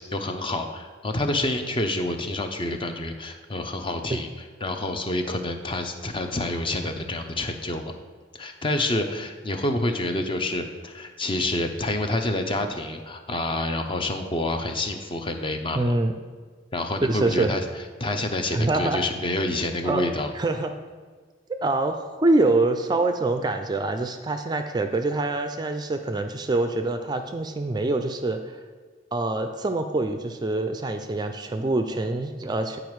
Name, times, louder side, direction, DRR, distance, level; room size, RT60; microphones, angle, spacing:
voice 1, 0.1-4.3 4.6-7.9 8.3-15.9 16.7-17.6 18.0-20.3, left 1 dB, 30° left, 6 dB, 0.6 m, -28 dB
voice 2, 15.8-16.1 17.0-17.6 18.5-19.0 19.8-20.0 20.3-20.7 21.5-28.6 29.1-32.8, right 2 dB, 25° right, 7 dB, 0.4 m, -25 dB
8.9 x 4.9 x 4.7 m, 1.5 s
head